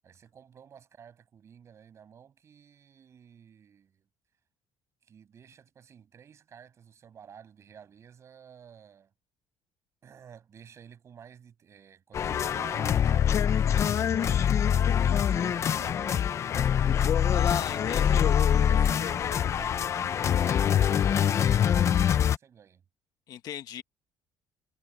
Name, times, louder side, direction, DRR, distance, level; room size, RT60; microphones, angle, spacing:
voice 1, 0.0-4.1 5.0-9.1 10.0-16.4 17.5-20.3 20.8-22.8, right 8 dB, 35° right, 7.7 m, -51 dB
sound 1, 12.1-22.4, left 9 dB, 35° left, 0.6 m, -24 dB
voice 2, 17.3-18.3 23.3-23.8, left 10 dB, 55° left, 1.4 m, -38 dB
cardioid pair, 150°, 8 cm